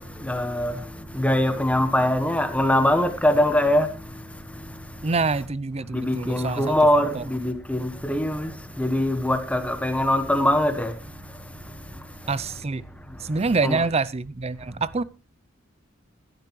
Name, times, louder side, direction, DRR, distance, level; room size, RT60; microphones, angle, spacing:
voice 1, 0.0-4.1 5.9-10.9 13.6-13.8, left 1 dB, 5° left, 1.4 m, -23 dB
voice 2, 5.0-6.8 7.1-7.2 12.3-12.8 13.2-15.0, right 4 dB, 30° right, 0.5 m, -26 dB
17.0 x 12.0 x 3.1 m
head